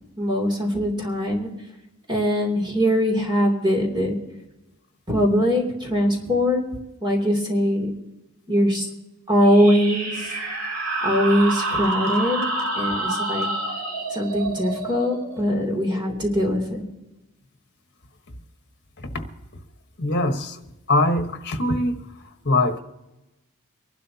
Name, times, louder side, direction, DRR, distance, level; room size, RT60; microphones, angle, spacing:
voice 1, 0.2-1.5 2.1-4.1 5.1-6.6 7.0-7.9 8.5-8.9 9.3-10.3 11.0-12.5 12.8-13.5 14.1-16.8, equal, 20° right, 2.8 m, -21 dB
sound 1, 9.4-16.7, right 2 dB, 70° right, 2.7 m, -28 dB
voice 2, 20.0-20.6 20.9-22.0 22.4-22.8, left 2 dB, 50° left, 1.3 m, -22 dB
24.0 x 12.0 x 2.8 m
head